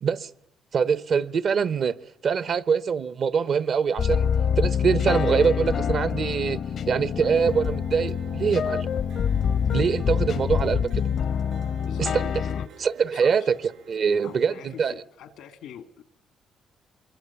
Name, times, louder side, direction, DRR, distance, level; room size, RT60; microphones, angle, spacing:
voice 1, 0.7-1.9 2.2-4.3 4.6-6.6 6.9-8.9 9.7-11.0 12.0-12.2 12.8-13.6 13.9-14.9, right 6 dB, 55° right, 0.9 m, -24 dB
sound 1, 4.0-12.7, left 7 dB, 65° left, 0.8 m, -26 dB
sound 2, 7.3-14.9, right 7 dB, 75° right, 5.9 m, -50 dB
voice 2, 13.1-13.5 14.2-16.0, left 9 dB, 85° left, 1.7 m, -44 dB
25.5 x 22.5 x 7.0 m
cardioid pair, 90°, 0 cm